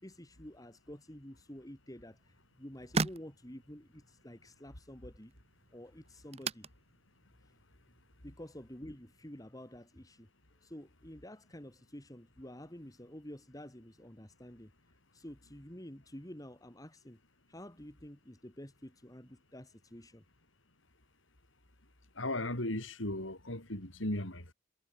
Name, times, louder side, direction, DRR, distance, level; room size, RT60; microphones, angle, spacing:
voice 1, 0.0-2.2 2.6-5.3 5.7-6.7 8.2-10.3 10.6-14.7 15.1-17.2 17.5-20.2, equal, 20° left, 2.9 m, -49 dB
sound 1, 2.0-9.3, right 4 dB, 30° right, 0.8 m, -42 dB
voice 2, 22.2-24.5, left 1 dB, 80° left, 6.0 m, -36 dB
head